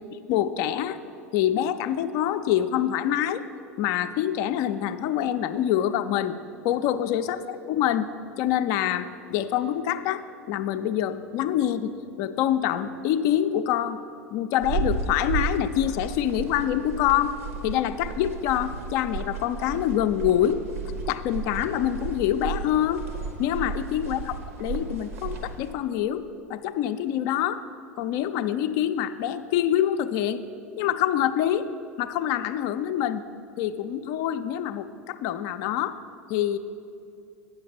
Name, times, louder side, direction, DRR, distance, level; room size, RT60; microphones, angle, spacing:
voice 1, 0.1-1.0 1.3-3.4 3.8-6.4 6.6-8.1 8.4-11.9 12.2-14.0 14.3-20.6 21.1-23.0 23.4-26.2 26.5-27.6 28.0-30.4 30.8-31.7 32.0-33.2 33.6-36.0 36.3-36.6, left 11 dB, 45° left, 11 dB, 0.4 m, -26 dB
sound 1, 14.6-25.7, right 4 dB, 65° right, 1.0 m, -33 dB
9.0 x 6.7 x 5.8 m, 2.6 s
figure-of-eight pair, 80°, 8 cm